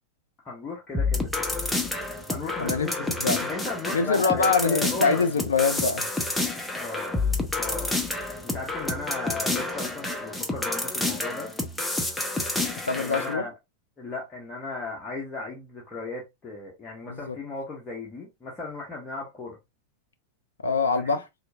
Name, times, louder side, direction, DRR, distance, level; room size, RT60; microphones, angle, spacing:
voice 1, 0.4-1.3 2.3-3.1 3.5-5.2 6.8-7.3 7.6-8.0 8.4-11.5 13.0-13.5 14.0-19.6 20.9-21.2, left 3 dB, 20° left, 1.1 m, -36 dB
sound 1, 0.9-13.3, left 2 dB, 5° left, 0.7 m, -29 dB
voice 2, 3.9-6.1 12.9-13.4 17.1-17.4 20.6-21.3, left 4 dB, 70° left, 0.4 m, -24 dB
4.3 x 2.6 x 2.4 m
figure-of-eight pair, 90°, 0 cm